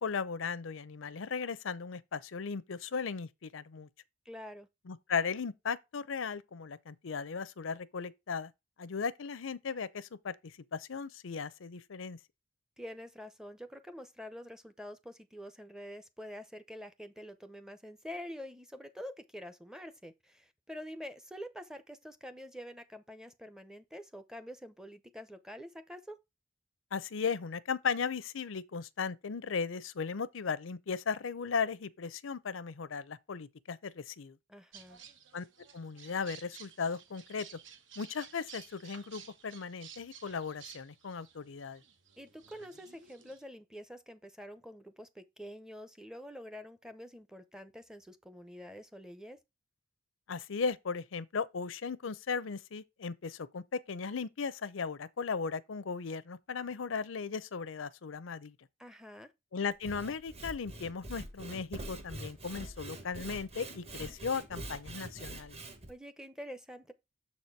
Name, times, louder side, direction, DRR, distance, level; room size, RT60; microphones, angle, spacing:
voice 1, 0.0-3.9 4.9-8.5 8.8-12.2 26.9-34.4 35.3-35.4 35.7-37.5 38.0-41.8 50.3-58.5 59.5-65.6, left 5 dB, 80° left, 0.6 m, -37 dB
voice 2, 4.3-4.7 12.8-26.2 34.5-35.0 42.2-49.4 58.8-59.3 65.9-66.9, equal, 5° right, 0.6 m, -47 dB
sound 1, 34.7-43.4, right 7 dB, 65° right, 1.1 m, -54 dB
Sawing / Wood, 59.7-65.9, right 2 dB, 30° right, 1.3 m, -45 dB
7.1 x 4.3 x 4.5 m
head